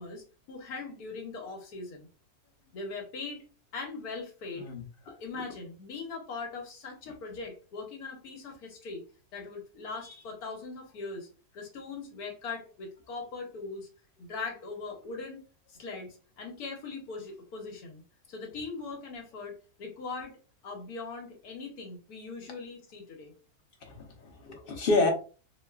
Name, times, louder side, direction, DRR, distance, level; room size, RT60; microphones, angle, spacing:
voice 1, 0.0-2.1 2.7-3.4 3.7-4.7 5.0-9.0 9.3-11.3 11.5-13.9 14.2-15.4 15.7-18.0 18.3-20.4 20.6-23.3, left 4 dB, 80° left, 1 dB, 1.3 m, -40 dB
voice 2, 23.8-25.1, left 3 dB, 45° left, 2 dB, 0.8 m, -28 dB
4.0 x 2.4 x 2.3 m, 0.36 s
omnidirectional pair, 1.6 m